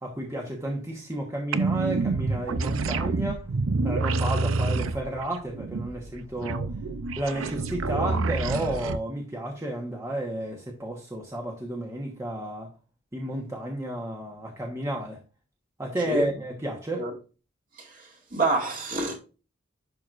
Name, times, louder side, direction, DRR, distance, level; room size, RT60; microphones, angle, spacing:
voice 1, 0.0-3.5 3.8-6.7 7.2-12.7 13.1-15.2 15.8-17.1, right 1 dB, 15° right, 1.2 m, -32 dB
sound 1, 1.5-9.0, right 3 dB, 80° right, 0.6 m, -27 dB
voice 2, 18.3-19.2, right 2 dB, 40° right, 2.2 m, -27 dB
11.0 x 4.8 x 2.5 m
head